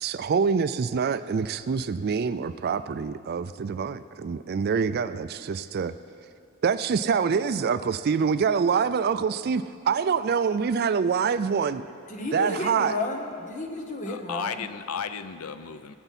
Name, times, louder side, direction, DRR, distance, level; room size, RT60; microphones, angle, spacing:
voice 1, 0.0-5.9 6.6-11.9 12.3-12.9, right 6 dB, 45° right, 13 dB, 0.3 m, -25 dB
voice 2, 12.1-14.6, left 2 dB, 35° left, 3 dB, 1.1 m, -32 dB
voice 3, 14.1-15.9, left 7 dB, 80° left, 11 dB, 0.5 m, -34 dB
20.0 x 8.0 x 4.2 m, 2.4 s
head